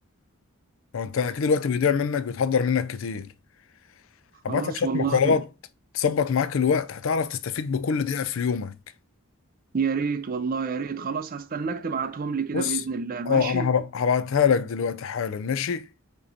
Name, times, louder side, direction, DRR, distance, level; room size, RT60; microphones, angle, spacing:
voice 1, 0.9-3.3 4.4-5.4 5.9-8.7 12.5-12.8 13.3-15.9, left 6 dB, 65° left, 0.4 m, -24 dB
voice 2, 4.5-5.4 9.7-13.7, right 5 dB, 40° right, 0.5 m, -29 dB
5.0 x 3.0 x 2.6 m
head